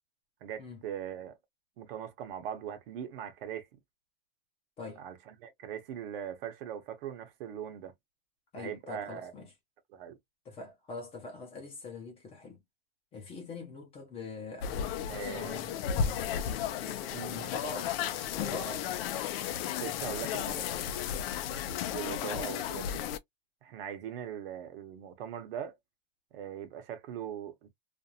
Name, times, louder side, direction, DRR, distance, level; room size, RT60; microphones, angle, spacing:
voice 1, 0.4-1.4 1.8-3.7 5.0-7.9 8.5-9.3 9.9-10.2 15.1-15.8 17.1-17.5 19.8-20.7 21.9-23.0 23.6-25.8 26.3-27.7, right 9 dB, 70° right, 0.9 m, -40 dB
voice 2, 8.5-9.5 10.4-12.6 13.1-16.3 16.8-17.9 18.3-18.9, left 3 dB, 20° left, 0.7 m, -44 dB
sound 1, 14.6-23.2, left 9 dB, 70° left, 0.6 m, -34 dB
2.6 x 2.1 x 2.7 m
supercardioid pair, 160°, 30 cm